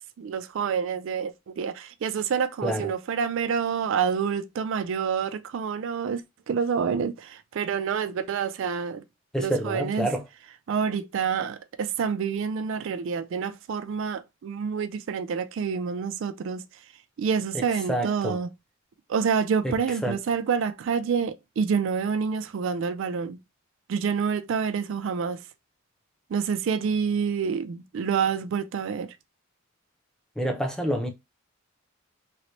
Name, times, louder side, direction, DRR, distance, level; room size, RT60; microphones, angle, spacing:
voice 1, 0.2-6.2 6.5-9.0 9.4-10.1 10.7-16.6 17.2-18.5 19.1-23.4 23.9-25.4 26.3-29.1, right 6 dB, 60° right, 0.3 m, -27 dB
voice 2, 9.3-10.2 17.5-18.4 19.6-19.7 20.0-20.2 30.4-31.1, right 1 dB, 5° left, 0.5 m, -28 dB
3.1 x 2.9 x 2.7 m
head